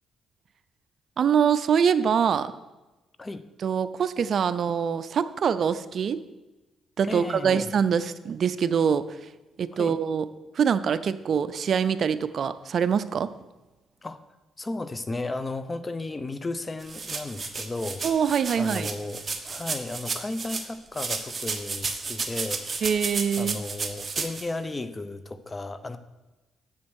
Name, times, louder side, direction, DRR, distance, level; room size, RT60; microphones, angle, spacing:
voice 1, 1.2-2.5 3.6-6.2 7.0-9.1 9.6-10.3 10.5-13.3 18.0-18.9 22.8-23.6, right 7 dB, 55° right, 14 dB, 0.4 m, -24 dB
voice 2, 7.0-7.7 9.7-10.0 14.0-14.2 14.6-18.0 18.6-23.1 23.4-26.0, left 2 dB, 25° left, 12 dB, 0.7 m, -34 dB
sound 1, 16.8-20.7 20.9-24.4, right 4 dB, 35° right, 1.1 m, -32 dB
7.5 x 7.3 x 6.3 m, 1.1 s
cardioid pair, 90°, 0 cm